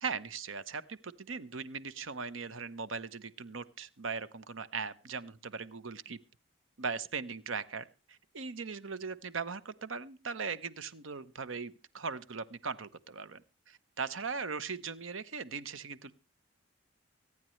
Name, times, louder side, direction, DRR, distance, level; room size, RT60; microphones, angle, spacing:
voice 1, 0.0-6.2 6.8-13.4 13.7-16.1, right 5 dB, 75° right, 15 dB, 0.9 m, -39 dB
24.5 x 9.7 x 3.2 m, 0.32 s
head